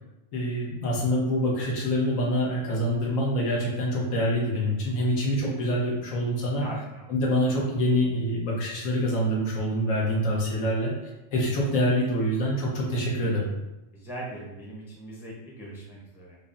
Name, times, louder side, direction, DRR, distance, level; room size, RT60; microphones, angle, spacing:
voice 1, 0.3-6.6 7.1-10.9 11.3-13.5, equal, 85° left, -3 dB, 1.3 m, -26 dB
voice 2, 6.6-7.1 13.9-16.4, right 1 dB, 5° right, -5 dB, 0.5 m, -40 dB
5.1 x 2.1 x 2.6 m, 0.97 s
omnidirectional pair, 1.3 m